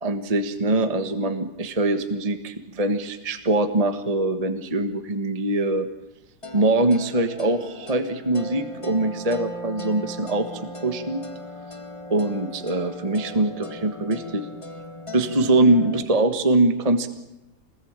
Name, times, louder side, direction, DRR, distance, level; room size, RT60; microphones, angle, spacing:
voice 1, 0.0-5.9 6.5-11.2 12.1-14.5 15.1-17.1, right 2 dB, 20° right, 8 dB, 1.4 m, -23 dB
sound 1, 6.4-16.0, equal, 15° left, 1.6 m, -38 dB
26.5 x 20.5 x 8.9 m, 0.92 s
omnidirectional pair, 2.0 m